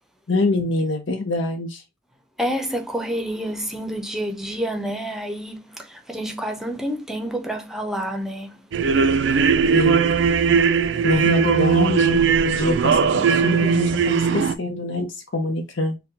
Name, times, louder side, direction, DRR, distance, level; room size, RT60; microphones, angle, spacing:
voice 1, 0.3-1.8 9.7-10.1 10.5-10.6 11.0-16.0, left 2 dB, 85° left, 0.8 m, -25 dB
voice 2, 2.4-8.7, equal, ahead, 0.7 m, -28 dB
sound 1, 8.7-14.5, right 6 dB, 70° right, 0.4 m, -19 dB
4.2 x 2.2 x 3.9 m
head